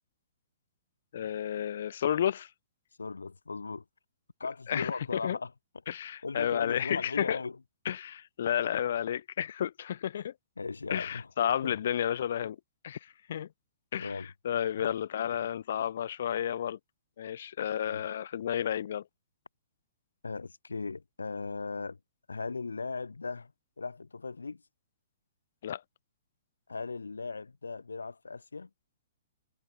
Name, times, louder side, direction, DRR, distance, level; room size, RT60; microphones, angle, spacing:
voice 1, 1.1-2.5 4.7-4.9 5.2-5.4 5.9-7.4 7.8-10.3 10.9-12.6 12.8-13.0 13.3-13.5 13.9-14.1 14.4-16.8 17.2-19.0 25.6-25.8, left 10 dB, 60° left, 0.9 m, -31 dB
voice 2, 3.0-3.8 4.4-5.5 6.2-7.6 10.6-11.3 11.6-11.7 14.0-14.3 14.8-14.9 17.8-18.0 20.2-22.0 22.3-23.5 23.8-24.6 26.7-28.7, left 4 dB, 85° left, 5.0 m, -38 dB
hypercardioid pair, 120°, 0 cm